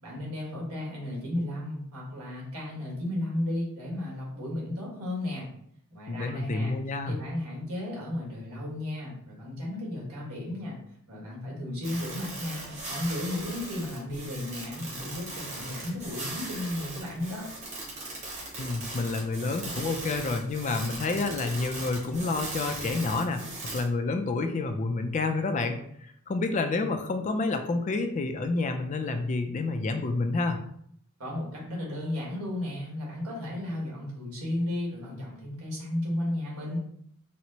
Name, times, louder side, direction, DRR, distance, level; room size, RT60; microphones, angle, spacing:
voice 1, 0.0-5.5 5.9-6.8 7.1-10.8 11.1-17.5 31.2-36.8, left 1 dB, 85° right, -3 dB, 1.4 m, -34 dB
voice 2, 6.1-7.2 18.6-23.4 23.7-25.8 26.3-30.6, left 3 dB, 35° left, 7 dB, 0.3 m, -29 dB
sound 1, 11.8-23.8, right 2 dB, 30° right, 1.1 m, -39 dB
4.3 x 2.0 x 2.8 m, 0.68 s
head